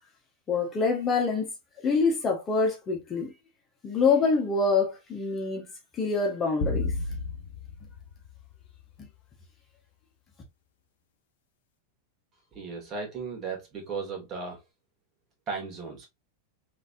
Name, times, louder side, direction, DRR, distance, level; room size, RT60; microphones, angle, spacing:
voice 1, 0.5-1.5 1.8-3.3 3.8-5.6 5.9-6.9, left 4 dB, 25° left, 1.2 m, -25 dB
sound 1, 6.6-9.1, left 3 dB, 55° left, 0.8 m, -33 dB
voice 2, 12.5-14.6 15.5-16.1, right 5 dB, 30° right, 2.0 m, -36 dB
3.9 x 3.3 x 2.6 m
figure-of-eight pair, 90°, 0 cm